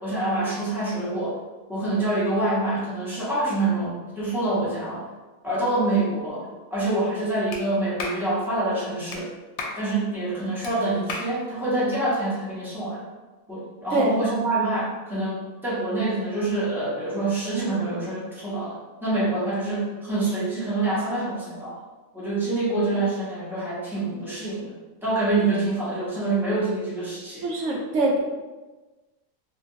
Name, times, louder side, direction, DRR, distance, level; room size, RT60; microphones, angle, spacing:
voice 1, 0.0-1.4 1.7-5.0 5.4-9.3 9.8-13.0 13.5-21.8 22.1-24.7 25.0-27.4, right 2 dB, ahead, -10 dB, 0.9 m, -26 dB
Clapping, 7.5-7.6 8.0-8.2 9.1-9.2 9.6-9.8 10.6-10.7 11.1-11.3, left 3 dB, 80° left, 1.0 m, -32 dB
voice 2, 27.4-28.2, right 2 dB, 65° right, -1 dB, 0.9 m, -23 dB
2.8 x 2.4 x 2.7 m, 1.2 s
omnidirectional pair, 1.4 m